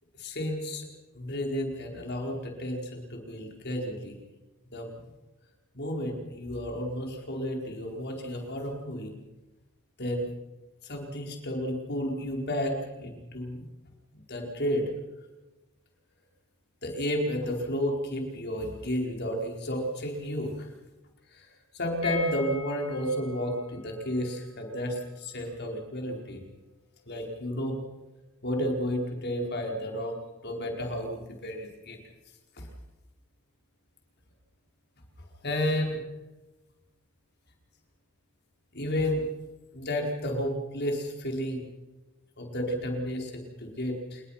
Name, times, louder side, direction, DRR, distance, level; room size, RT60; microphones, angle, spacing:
voice 1, 0.2-0.8 1.1-4.1 4.7-4.9 5.7-9.1 10.0-10.3 10.8-13.6 14.1-14.8 16.8-20.7 21.3-21.5 21.7-26.4 27.1-27.8 28.4-30.2 30.4-32.0 35.4-36.0 38.7-39.3 39.7-41.7 42.4-44.2, equal, 50° left, 1 dB, 4.9 m, -32 dB
sound 1, 22.0-27.8 28.0-28.1 28.4-28.5, left 4 dB, 30° left, 5.8 m, -43 dB
28.5 x 20.5 x 5.9 m, 1.1 s
head